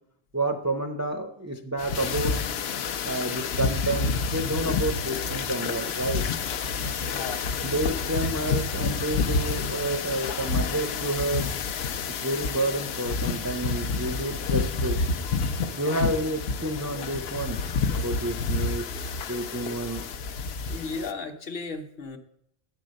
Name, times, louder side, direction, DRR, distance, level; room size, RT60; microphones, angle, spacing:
voice 1, 0.3-2.4 3.0-6.3 7.6-11.5 12.1-15.1 15.8-17.6 17.9-20.1, right 2 dB, 25° right, 4 dB, 0.3 m, -30 dB
sound 1, 1.8-21.1, left 4 dB, 80° left, 0.8 m, -29 dB
voice 2, 7.1-7.5 20.7-22.2, left 4 dB, 60° left, 3 dB, 1.0 m, -35 dB
9.6 x 4.8 x 6.3 m, 0.77 s
omnidirectional pair, 1.1 m